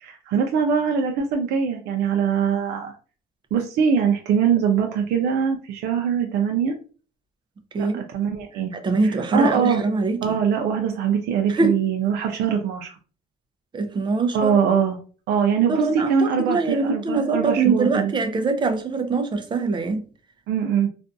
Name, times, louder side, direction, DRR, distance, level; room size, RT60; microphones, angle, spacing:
voice 1, 0.0-2.9 3.5-6.7 7.8-8.7 9.0-9.8 10.2-13.0 14.3-15.0 15.3-18.1 20.5-20.9, right 7 dB, 80° right, 0.5 m, -22 dB
voice 2, 8.8-10.4 11.5-11.8 13.7-14.5 15.7-20.1, right 3 dB, 25° right, 0.5 m, -23 dB
2.5 x 2.2 x 2.5 m
cardioid pair, 110°, 17 cm